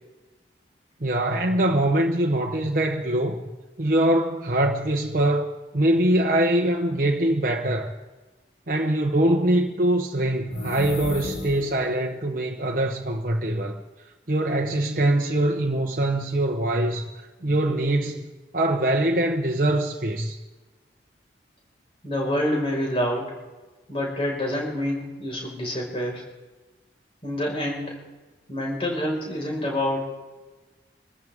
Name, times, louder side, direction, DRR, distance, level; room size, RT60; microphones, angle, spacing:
voice 1, 1.0-3.4 3.8-7.9 8.7-13.8 14.3-20.4, right 1 dB, 50° right, 1.0 m, -23 dB
sound 1, 10.4-11.9, left 2 dB, 65° left, 2.0 m, -34 dB
voice 2, 22.0-23.3 23.9-26.2 27.2-28.0 28.5-30.0, left 1 dB, 30° left, 5.2 m, -27 dB
26.5 x 14.0 x 3.6 m
head